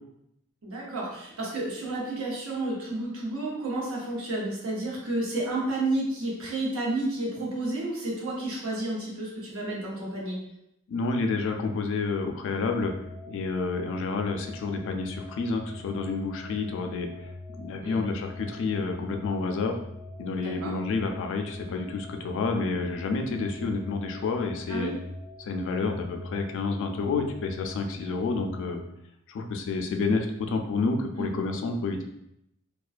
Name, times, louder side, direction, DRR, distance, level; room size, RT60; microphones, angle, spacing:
voice 1, 0.6-10.4 17.8-18.0 20.4-20.7 24.7-24.9 31.2-31.3, right 2 dB, 90° right, -4 dB, 0.8 m, -31 dB
voice 2, 10.9-12.9 13.3-17.3 17.6-19.8 20.2-24.9 25.4-28.8 29.3-32.0, left 4 dB, 65° left, 4 dB, 0.3 m, -29 dB
sound 1, 12.7-28.8, left 2 dB, 35° right, 0.9 m, -43 dB
2.3 x 2.2 x 2.4 m, 0.81 s
head